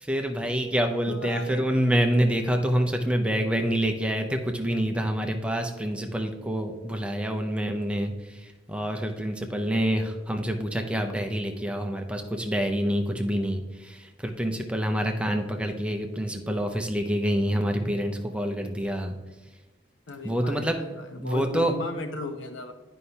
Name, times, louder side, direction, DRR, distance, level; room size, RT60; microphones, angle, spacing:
voice 1, 0.0-19.1 20.2-20.8 21.2-21.7, equal, 5° right, 4 dB, 0.6 m, -27 dB
voice 2, 1.1-1.6 20.1-22.7, left 3 dB, 75° left, 6 dB, 0.7 m, -36 dB
9.7 x 5.4 x 2.9 m, 1.1 s
head